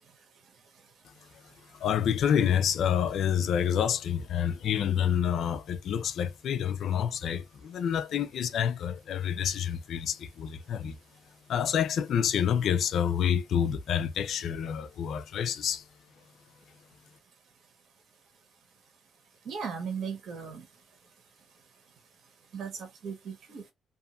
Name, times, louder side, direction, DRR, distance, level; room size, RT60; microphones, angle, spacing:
voice 1, 1.0-1.4 1.7-11.0 11.5-15.9, left 8 dB, 70° left, 0.4 m, -28 dB
voice 2, 19.4-20.7 22.5-23.6, right 6 dB, 65° right, 1.1 m, -37 dB
2.6 x 2.4 x 2.4 m
cardioid pair, 90°, 0 cm